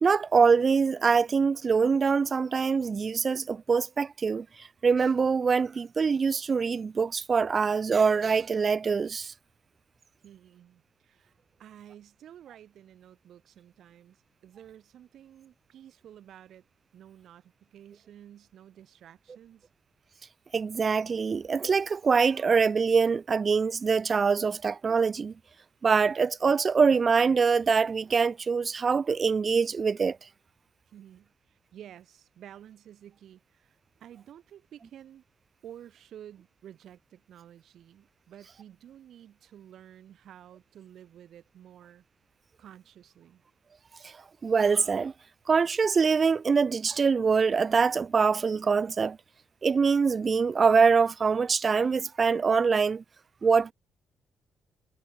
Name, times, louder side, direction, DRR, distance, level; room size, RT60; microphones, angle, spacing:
voice 1, 0.0-9.3 20.5-25.3 25.8-30.2 44.0-44.1 44.4-45.1 45.5-49.2 49.6-53.0 53.4-53.7, right 5 dB, 40° right, 1.1 m, -24 dB
voice 2, 10.2-11.3 11.6-16.7 16.9-19.7 30.9-35.2 35.6-42.0 42.6-43.4, right 10 dB, 70° right, 4.1 m, -51 dB
cardioid pair, 90°, 0 cm